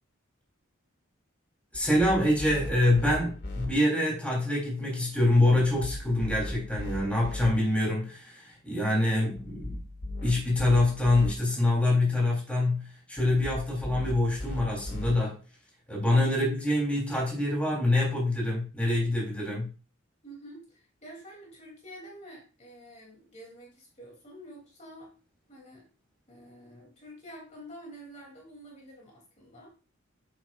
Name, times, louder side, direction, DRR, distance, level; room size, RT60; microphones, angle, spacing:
sound 1, 1.7-3.7 5.5-7.5 9.4-11.3 13.2-15.1, left 1 dB, 50° left, 2.3 m, -37 dB
voice 1, 1.7-9.8 10.2-15.4 15.9-19.7, left 1 dB, 5° left, 3.7 m, -25 dB
voice 2, 16.2-16.6 19.4-19.6 20.2-25.1 25.5-25.9 26.3-29.7, right 1 dB, 35° left, 3.2 m, -48 dB
9.9 x 9.2 x 2.6 m
head